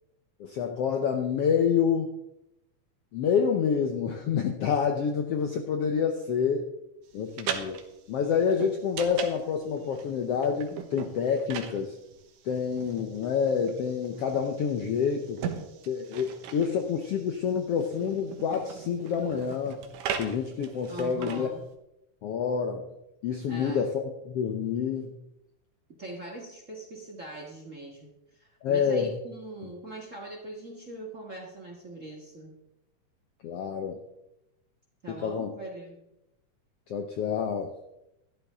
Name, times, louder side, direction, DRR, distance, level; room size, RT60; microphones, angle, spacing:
voice 1, 0.4-2.1 3.1-6.7 7.1-7.8 8.1-12.0 12.4-15.4 15.9-19.8 20.2-21.5 22.2-22.8 23.2-25.1 28.6-29.1 33.4-34.0 35.2-35.5 36.9-37.7, left 7 dB, 70° left, 4 dB, 1.5 m, -28 dB
sound 1, 7.1-21.7, right 7 dB, 75° right, 2.6 m, -39 dB
voice 2, 20.9-21.6 23.5-23.8 25.9-32.5 35.0-36.0, right 2 dB, 30° right, 1 dB, 1.5 m, -41 dB
13.0 x 12.5 x 3.6 m, 0.89 s
omnidirectional pair, 3.7 m